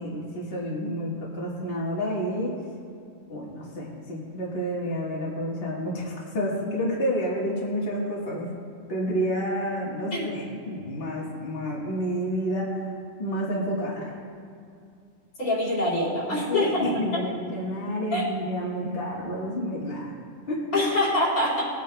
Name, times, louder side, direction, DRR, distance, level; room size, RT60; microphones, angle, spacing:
voice 1, 0.0-2.6 3.3-8.5 8.9-12.9 13.2-14.1 16.2-20.2 20.5-20.8, equal, 45° left, -5 dB, 1.7 m, -29 dB
voice 2, 15.4-16.9 18.1-18.2 20.7-21.6, left 1 dB, 85° left, -7 dB, 3.5 m, -25 dB
19.5 x 9.0 x 2.2 m, 2.4 s
omnidirectional pair, 1.5 m